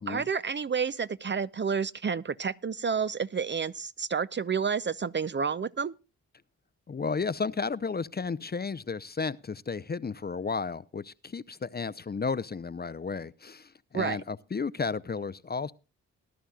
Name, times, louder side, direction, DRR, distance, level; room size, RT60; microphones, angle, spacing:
voice 1, 0.0-5.9 13.9-14.2, right 6 dB, 30° right, 0.5 m, -30 dB
voice 2, 6.9-15.7, left 5 dB, 25° left, 0.6 m, -33 dB
19.5 x 11.0 x 2.3 m
supercardioid pair, 45°, 35 cm